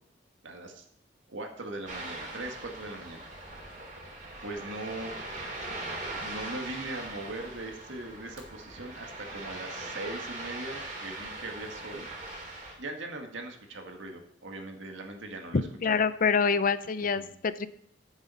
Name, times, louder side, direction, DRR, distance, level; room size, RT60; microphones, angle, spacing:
voice 1, 0.4-0.9 1.3-3.2 4.4-5.2 6.2-12.1 12.8-16.0 17.1-17.3, right 2 dB, 85° right, 4 dB, 1.9 m, -40 dB
Ocean, 1.9-12.7, right 2 dB, 45° right, 3.5 m, -40 dB
voice 2, 15.5-17.7, left 5 dB, 45° left, 14 dB, 0.6 m, -26 dB
10.5 x 7.3 x 5.6 m, 0.68 s
head